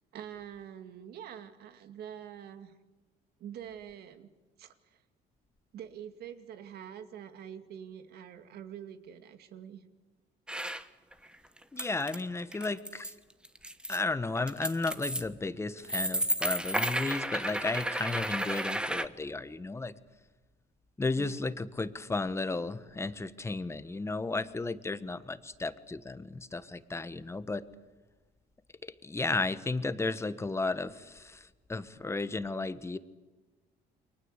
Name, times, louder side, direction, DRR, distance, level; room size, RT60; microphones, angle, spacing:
voice 1, 0.1-2.7 3.4-4.3 4.6-5.0 5.7-9.8 21.2-21.5, right 9 dB, 70° right, 9 dB, 2.5 m, -45 dB
sound 1, 10.5-10.8 11.1-12.2 12.5-13.1 13.4-14.0 14.3-15.2 15.8-19.1, right 1 dB, 5° right, 1.3 m, -32 dB
voice 2, 11.7-13.1 13.9-19.9 21.0-27.6 28.8-33.0, left 3 dB, 15° left, 12 dB, 1.4 m, -34 dB
29.5 x 23.5 x 8.3 m, 1.2 s
cardioid pair, 110°, 17 cm